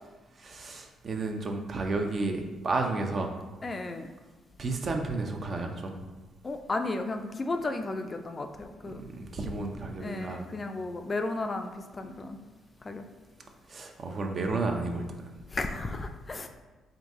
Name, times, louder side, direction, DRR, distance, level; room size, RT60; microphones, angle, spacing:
voice 1, 0.4-3.3 4.6-6.0 8.8-10.5 13.7-15.4, right 3 dB, 45° right, 3 dB, 0.5 m, -32 dB
voice 2, 3.6-4.1 6.4-9.0 10.0-12.4 12.8-13.0 15.5-16.5, left 2 dB, 30° left, 6 dB, 0.3 m, -34 dB
3.8 x 2.6 x 3.5 m, 1.2 s
cardioid pair, 90°, 0 cm